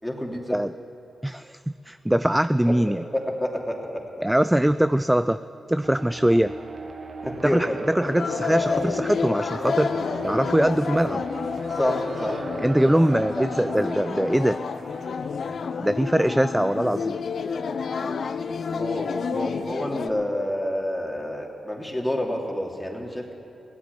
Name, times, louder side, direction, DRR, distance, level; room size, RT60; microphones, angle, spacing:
voice 1, 0.0-0.6 2.6-4.0 7.2-7.8 11.7-12.5 18.7-23.3, left 1 dB, 10° left, 0 dB, 2.9 m, -29 dB
voice 2, 1.2-3.0 4.2-5.4 5.7-6.5 7.4-9.9 10.2-11.2 12.6-14.6 15.8-17.2, right 1 dB, 10° right, 12 dB, 0.4 m, -22 dB
sound 1, 5.8-15.2, right 3 dB, 55° right, 1.3 m, -38 dB
sound 2, 8.0-20.1, left 5 dB, 70° left, 0.6 m, -29 dB
16.5 x 8.5 x 9.7 m, 2.6 s
cardioid pair, 50°, 0 cm